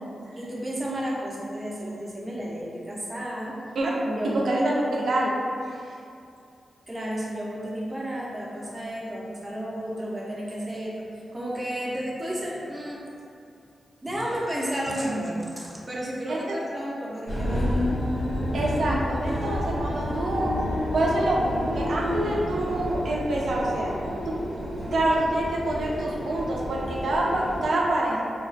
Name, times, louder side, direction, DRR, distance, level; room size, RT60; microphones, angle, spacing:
voice 1, 0.4-3.6 4.0-5.1 6.9-13.1 14.0-17.8, equal, 20° right, -5 dB, 0.5 m, -32 dB
voice 2, 4.2-5.3 16.3-16.6 18.5-20.5 20.9-23.9 24.3-24.4 24.9-28.3, right 1 dB, 75° right, -3 dB, 0.4 m, -26 dB
sound 1, 17.3-27.7, equal, 75° left, 0.9 m, -29 dB
2.3 x 2.2 x 2.4 m, 2.4 s
cardioid pair, 85°, 0 cm